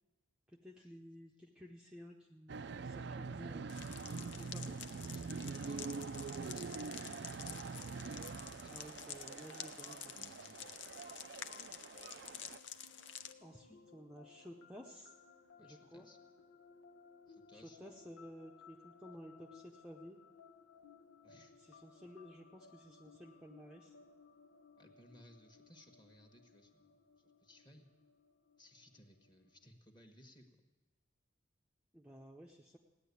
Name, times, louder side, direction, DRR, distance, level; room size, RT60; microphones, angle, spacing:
voice 1, 0.5-3.7 4.4-4.8 8.7-10.2 13.4-15.1 15.6-16.1 17.5-20.2 21.6-24.0 31.9-32.8, equal, 5° right, -1 dB, 0.7 m, -54 dB
sound 1, 2.5-12.6, right 4 dB, 55° right, 0.4 m, -45 dB
sound 2, 3.7-13.3, left 9 dB, 55° left, 0.7 m, -50 dB
voice 2, 4.3-5.8 6.1-8.9 10.1-10.7 15.6-16.2 17.3-18.2 21.2-21.5 24.8-27.9 28.6-30.5, equal, 20° left, 4 dB, 1.4 m, -63 dB
sound 3, 10.2-29.7, left 5 dB, 80° left, 1.0 m, -62 dB
16.5 x 10.0 x 8.3 m, 1.2 s
head